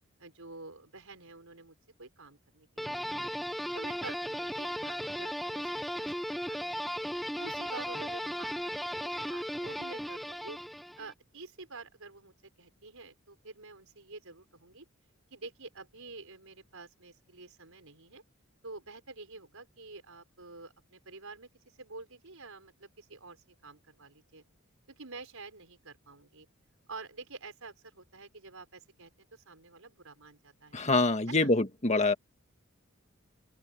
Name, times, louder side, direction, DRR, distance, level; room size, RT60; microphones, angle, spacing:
voice 1, 0.2-3.2 3.7-6.9 7.4-10.6 11.0-14.9 15.3-18.2 18.6-24.4 25.0-26.5 26.9-30.8 31.3-31.5, right 3 dB, 75° right, 5.2 m, -48 dB
sound 1, 2.8-11.1, equal, ahead, 0.6 m, -36 dB
voice 2, 30.7-32.1, left 3 dB, 35° left, 1.7 m, -25 dB
open air
head